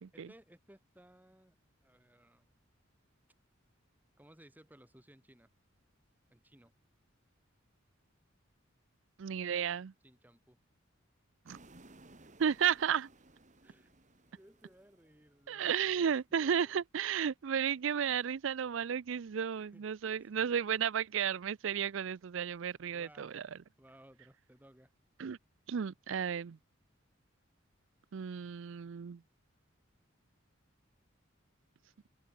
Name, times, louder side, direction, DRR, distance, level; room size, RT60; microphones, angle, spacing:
voice 1, 0.1-1.6 1.8-2.5 4.2-5.5 6.3-6.7 10.0-10.6 13.6-13.9 14.3-16.8 19.6-19.9 20.2-20.4 22.9-23.4 23.8-24.9, right 1 dB, 10° right, 2.7 m, -60 dB
voice 2, 9.2-9.9 11.5-11.6 12.4-13.1 15.5-23.4 25.2-25.4 25.7-26.6 28.1-29.2, right 8 dB, 65° right, 0.4 m, -33 dB
sound 1, 11.4-15.7, right 2 dB, 40° right, 2.8 m, -60 dB
open air
head